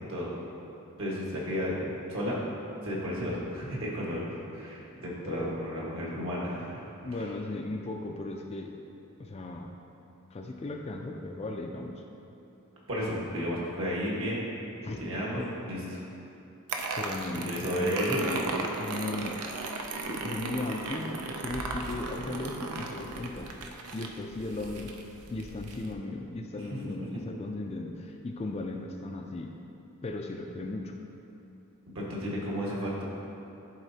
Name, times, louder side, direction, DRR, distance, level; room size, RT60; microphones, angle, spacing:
voice 1, 1.0-2.4 2.8-4.2 4.5-6.8 12.9-14.4 14.8-16.0 17.3-18.2 27.1-27.2 31.9-33.0, equal, 65° right, -5 dB, 1.5 m, -33 dB
voice 2, 5.2-5.7 7.0-8.8 9.2-9.7 10.3-12.0 14.8-15.0 17.0-19.4 20.0-23.5 23.9-25.0 25.3-29.5 30.0-31.0, left 2 dB, 30° left, 2 dB, 0.3 m, -37 dB
sound 1, 16.7-25.9, right 3 dB, 85° right, 0.6 m, -36 dB
11.0 x 4.1 x 2.8 m, 2.9 s
head